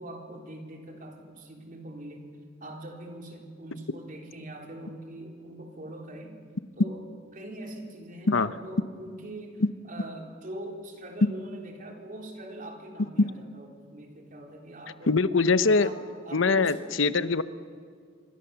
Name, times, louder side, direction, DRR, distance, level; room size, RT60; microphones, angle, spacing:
voice 1, 0.0-2.4 2.6-6.4 6.8-7.0 7.3-15.1 15.7-16.8, right 1 dB, 45° right, 2 dB, 3.7 m, -42 dB
voice 2, 15.1-15.9 16.3-17.4, left 4 dB, 80° left, 13 dB, 0.9 m, -22 dB
26.5 x 25.5 x 7.0 m, 2.1 s
head